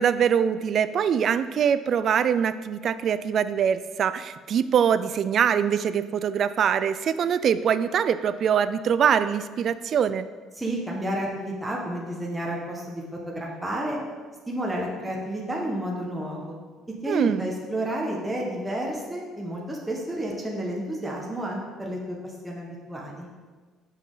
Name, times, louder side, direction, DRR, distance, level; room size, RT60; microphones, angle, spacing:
voice 1, 0.0-10.3 17.1-17.5, right 8 dB, 50° right, 13 dB, 0.3 m, -23 dB
voice 2, 10.6-14.0 14.5-16.6 17.0-23.3, right 1 dB, 10° right, -2 dB, 1.1 m, -31 dB
6.1 x 5.6 x 3.9 m, 1.4 s
cardioid pair, 110°, 0 cm